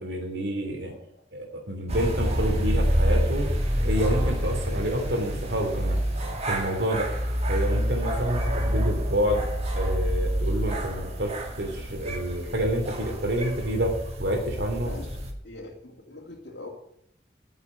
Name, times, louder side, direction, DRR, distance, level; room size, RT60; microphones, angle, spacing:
voice 1, 0.0-0.9 1.3-6.0 6.4-7.1 7.5-9.4 9.7-14.9, equal, 70° right, 3 dB, 2.9 m, -28 dB
voice 2, 0.8-1.2 14.8-16.7, left 2 dB, 70° left, -3 dB, 2.5 m, -43 dB
sound 1, 1.9-15.3, equal, 40° right, 2.2 m, -27 dB
9.4 x 7.1 x 8.9 m, 0.72 s
head